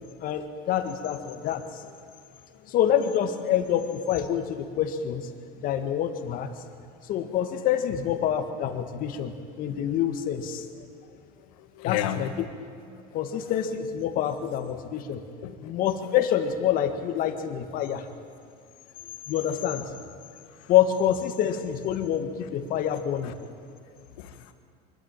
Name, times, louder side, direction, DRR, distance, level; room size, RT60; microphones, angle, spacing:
voice 1, 0.2-1.8 2.7-5.3 5.6-6.5 7.0-10.7 11.8-12.3 13.1-15.2 15.6-18.1 19.3-19.9 20.7-23.3, left 10 dB, 50° left, 7 dB, 1.9 m, -26 dB
voice 2, 11.1-12.5 13.1-13.4 15.4-15.7 20.5-20.7 23.2-23.3 23.9-24.5, left 11 dB, 80° left, 8 dB, 1.8 m, -35 dB
24.0 x 13.0 x 9.1 m, 2.3 s
supercardioid pair, 130°, 19 cm